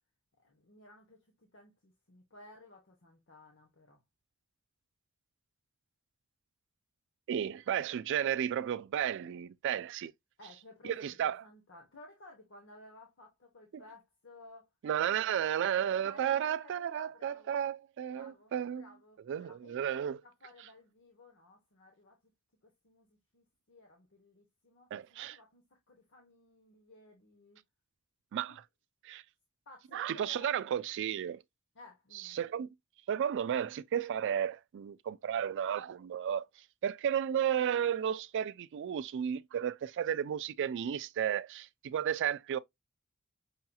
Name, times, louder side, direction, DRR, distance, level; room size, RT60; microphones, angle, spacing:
voice 1, 0.4-4.0 10.4-14.7 15.1-15.3 16.0-17.6 18.1-22.3 22.6-27.6 29.7-30.7 31.7-32.4, left 2 dB, 60° left, 1.1 m, -57 dB
voice 2, 7.3-10.1 10.8-11.4 13.7-13.8 14.8-18.9 19.3-20.2 24.9-25.4 28.3-28.6 29.0-29.2 29.9-31.4 32.1-32.7 33.1-36.5 36.8-42.6, right 9 dB, 60° right, 0.3 m, -33 dB
5.6 x 2.8 x 2.2 m
head